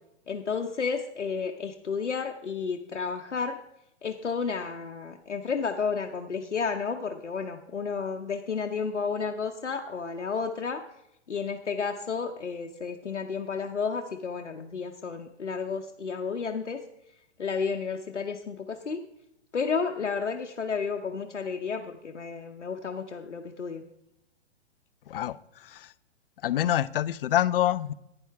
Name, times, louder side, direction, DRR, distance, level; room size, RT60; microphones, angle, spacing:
voice 1, 0.3-3.6 4.0-10.8 11.3-16.8 17.4-19.0 19.5-23.8, left 5 dB, 90° left, 0.9 m, -32 dB
voice 2, 25.1-25.9 26.4-27.9, left 12 dB, 55° left, 0.5 m, -26 dB
11.5 x 9.8 x 3.4 m
figure-of-eight pair, 125°, 35 cm